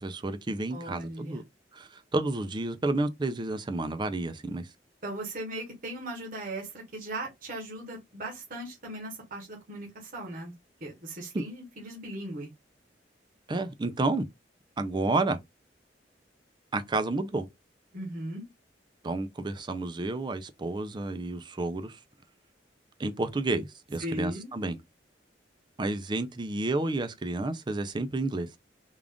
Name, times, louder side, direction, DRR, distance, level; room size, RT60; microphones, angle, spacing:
voice 1, 0.0-1.4 1.7-4.7 11.3-11.4 13.5-14.3 14.8-15.4 16.7-17.5 19.0-22.0 23.0-24.8 25.8-28.5, right 2 dB, 25° right, 0.4 m, -30 dB
voice 2, 0.7-1.4 5.0-10.5 10.8-12.5 17.9-18.5 24.0-24.5, right 1 dB, 50° right, 1.0 m, -38 dB
3.7 x 2.4 x 3.4 m
head